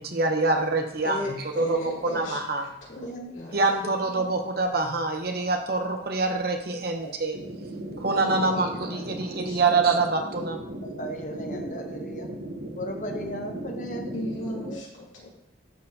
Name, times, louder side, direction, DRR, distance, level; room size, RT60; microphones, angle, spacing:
voice 1, 0.0-1.8 2.0-2.7 3.5-7.4 8.0-10.6, right 3 dB, 55° right, 4 dB, 0.8 m, -25 dB
voice 2, 1.0-3.6 8.2-9.6 14.1-15.4, left 1 dB, 90° left, -6 dB, 3.0 m, -37 dB
voice 3, 3.0-3.3 4.1-4.2 7.0-7.1 10.8-12.3 12.8-14.1 14.7-14.8, equal, 40° left, 4 dB, 0.9 m, -36 dB
sound 1, 7.3-14.7, right 1 dB, 85° right, 1.0 m, -37 dB
12.0 x 4.5 x 2.8 m, 0.78 s
head